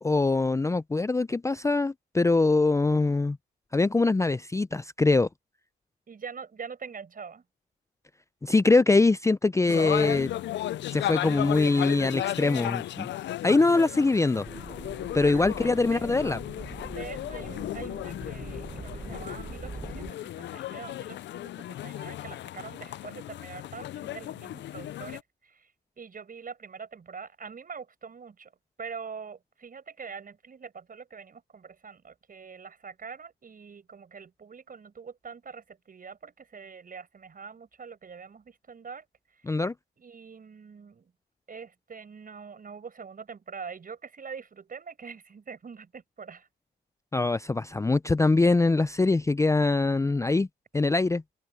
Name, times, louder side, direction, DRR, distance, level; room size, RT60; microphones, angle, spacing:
voice 1, 0.0-3.4 3.7-5.3 8.4-10.3 10.9-13.1 13.4-14.5 15.1-16.4 39.5-39.7 47.1-50.5 50.7-51.2, left 3 dB, 15° left, 0.5 m, -23 dB
voice 2, 6.1-7.4 15.1-16.0 16.9-25.7 26.0-28.5 28.8-39.0 39.3-39.4 40.0-41.1 41.5-46.5, right 6 dB, 45° right, 6.6 m, -44 dB
sound 1, 9.7-25.2, left 13 dB, 65° left, 0.5 m, -35 dB
sound 2, 14.5-20.1, right 3 dB, 25° right, 1.3 m, -42 dB
open air
supercardioid pair, 65°, 20 cm